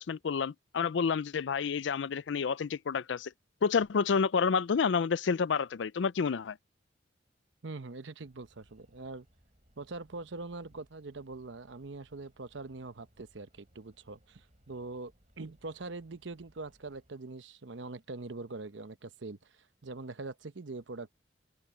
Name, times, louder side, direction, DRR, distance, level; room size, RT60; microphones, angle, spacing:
voice 1, 0.0-3.3 3.6-6.6, left 5 dB, 75° left, 0.4 m, -29 dB
voice 2, 7.6-9.3 9.8-15.1 15.4-21.1, right 3 dB, 75° right, 0.9 m, -43 dB
sound 1, 8.2-17.1, equal, 40° right, 7.5 m, -66 dB
head